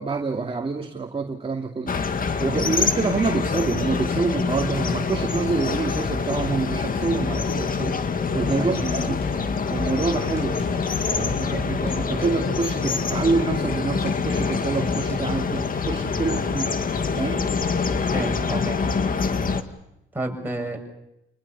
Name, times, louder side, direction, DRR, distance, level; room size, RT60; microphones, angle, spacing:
voice 1, 0.0-1.9 2.4-8.0 8.3-8.8 9.1-9.2 9.7-10.6 11.1-16.7 17.1-17.4, right 4 dB, 25° right, 3 dB, 2.4 m, -26 dB
sound 1, 1.9-19.6, left 5 dB, 45° left, 2.1 m, -25 dB
sound 2, 8.4-15.3, left 1 dB, 30° left, 6.9 m, -43 dB
voice 2, 8.5-9.2 16.2-16.4 18.1-18.9 20.1-20.8, right 2 dB, 10° right, 1 dB, 7.6 m, -31 dB
29.5 x 20.0 x 7.0 m, 0.84 s
cardioid pair, 90°, 20 cm